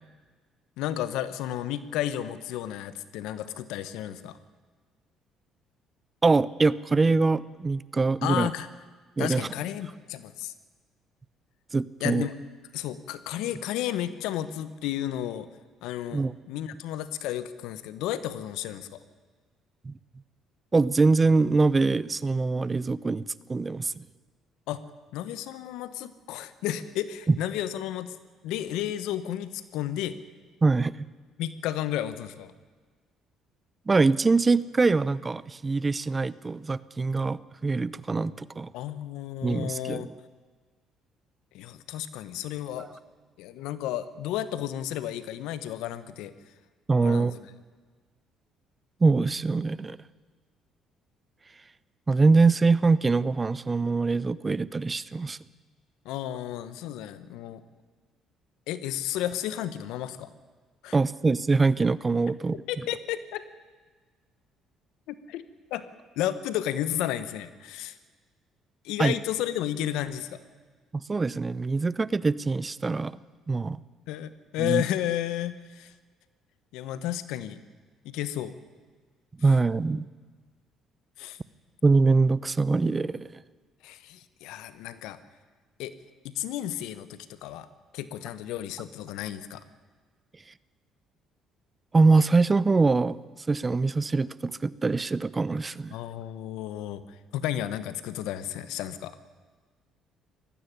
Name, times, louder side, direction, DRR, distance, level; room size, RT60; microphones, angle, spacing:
voice 1, 0.8-4.4 8.2-8.7 9.2-10.5 12.0-12.3 12.7-15.5 15.8-19.0 24.7-24.8 25.1-28.1 28.4-30.2 31.4-32.5 38.7-40.1 41.5-42.9 43.4-46.3 47.0-47.4 56.0-57.6 58.7-60.3 60.8-61.0 62.7-63.4 65.1-65.4 65.7-65.8 66.2-68.0 68.8-70.4 74.1-75.9 76.7-77.6 78.0-78.6 81.2-81.4 83.8-85.2 85.8-85.9 86.2-87.7 87.9-89.6 95.9-97.0 97.3-99.2, left 12 dB, 80° left, 14 dB, 1.1 m, -32 dB
voice 2, 6.2-8.5 9.2-9.4 11.7-12.3 16.1-16.3 19.8-19.9 20.7-24.0 27.3-27.4 30.6-31.0 33.9-38.7 39.4-40.1 46.9-47.3 49.0-50.0 52.1-55.4 60.9-62.6 69.0-69.1 70.9-73.2 73.5-73.8 74.6-74.8 79.4-80.0 81.8-83.3 91.9-93.2 93.5-95.9, right 3 dB, 25° right, 19 dB, 0.7 m, -23 dB
19.5 x 14.5 x 10.0 m, 1.5 s
supercardioid pair, 70°, 0 cm